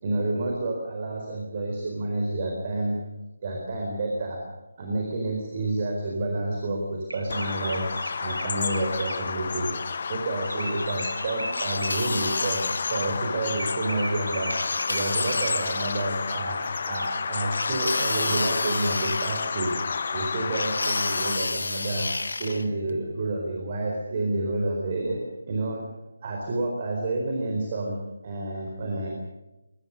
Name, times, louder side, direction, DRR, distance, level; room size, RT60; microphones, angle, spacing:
voice 1, 0.0-3.0 3.4-4.4 4.8-7.9 8.2-9.7 10.1-12.6 12.9-14.5 14.9-16.6 16.9-19.8 20.1-22.1 22.4-25.2 25.5-25.8 26.2-28.0 28.2-29.1, right 2 dB, 30° right, 1 dB, 4.3 m, -29 dB
sound 1, 7.1-9.5 10.4-12.4 13.6-15.8 16.9-17.2, right 1 dB, 80° right, 3.2 m, -37 dB
Bird vocalization bird call bird song, 7.3-21.4, left 5 dB, 40° left, 1.0 m, -31 dB
sound 2, 11.5-13.3 14.5-16.1 17.5-19.9 20.5-22.7, left 3 dB, 55° left, 1.6 m, -31 dB
23.0 x 22.5 x 6.6 m, 1.0 s
figure-of-eight pair, 155°, 0 cm